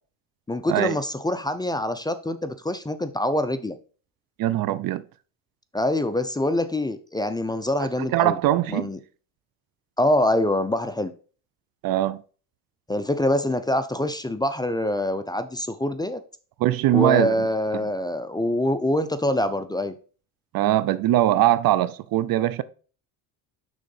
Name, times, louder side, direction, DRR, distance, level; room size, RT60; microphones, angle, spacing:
voice 1, 0.5-3.8 5.7-8.4 8.7-9.0 10.0-11.1 12.9-16.2 16.9-19.9, left 1 dB, 10° left, 0.5 m, -25 dB
voice 2, 4.4-5.0 8.0-8.9 11.8-12.2 16.6-17.5 17.8-17.9 20.5-22.6, right 13 dB, 50° right, 0.6 m, -21 dB
6.2 x 3.8 x 5.4 m
supercardioid pair, 80°, 44 cm